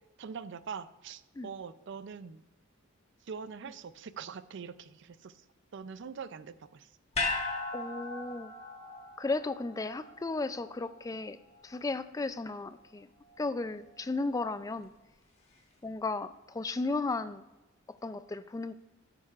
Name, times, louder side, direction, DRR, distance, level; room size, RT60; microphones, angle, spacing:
voice 1, 0.2-2.4 3.3-5.4 5.7-6.9, right 6 dB, 60° right, 15 dB, 0.4 m, -43 dB
sound 1, 7.1-11.5 11.8-11.9, left 3 dB, 30° left, 1.5 m, -37 dB
voice 2, 7.7-8.5 9.2-11.4 11.6-13.1 13.4-14.9 15.8-17.5 17.9-18.7, left 3 dB, 15° left, 13 dB, 0.3 m, -34 dB
11.5 x 8.9 x 2.4 m, 1.1 s
head